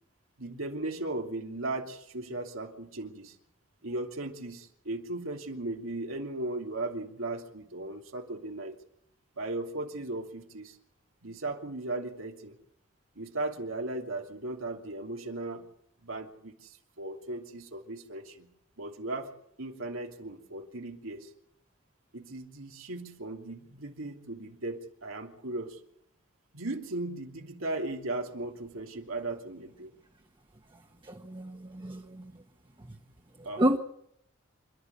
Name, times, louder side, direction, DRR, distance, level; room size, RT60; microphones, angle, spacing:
voice 1, 0.4-3.4 3.8-8.8 9.4-10.8 11.2-12.6 13.2-15.7 16.0-18.5 18.8-21.3 22.1-25.8 26.5-29.9 33.4-33.6, right 2 dB, 90° right, 2 dB, 3.0 m, -37 dB
voice 2, 31.0-32.3 32.8-33.0 33.6-33.8, right 1 dB, 25° right, 1 dB, 1.4 m, -30 dB
27.5 x 12.0 x 8.2 m, 0.72 s
head